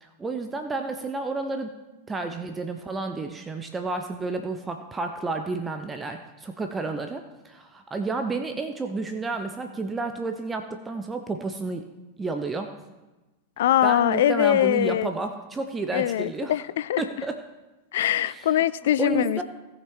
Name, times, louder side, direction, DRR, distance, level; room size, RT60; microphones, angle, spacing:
voice 1, 0.0-1.7 2.1-11.9 12.2-12.9 13.8-16.6 17.0-17.4 18.2-18.5 19.0-19.4, right 3 dB, 15° right, 6 dB, 0.7 m, -31 dB
voice 2, 13.6-15.1 15.9-17.0 17.9-19.4, left 12 dB, 60° left, 17 dB, 0.4 m, -22 dB
17.0 x 5.9 x 4.5 m, 1.1 s
figure-of-eight pair, 90°, 0 cm